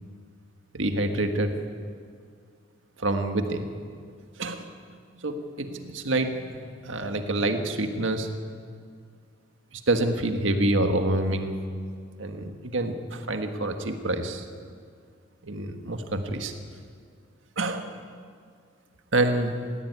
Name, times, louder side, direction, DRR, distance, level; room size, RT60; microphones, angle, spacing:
voice 1, 0.7-1.5 3.0-3.6 4.4-4.6 5.2-8.3 9.7-11.5 12.2-14.4 15.4-16.5 17.6-17.9 19.1-19.6, right 2 dB, 80° right, 6 dB, 1.7 m, -27 dB
18.5 x 16.0 x 9.4 m, 2.1 s
head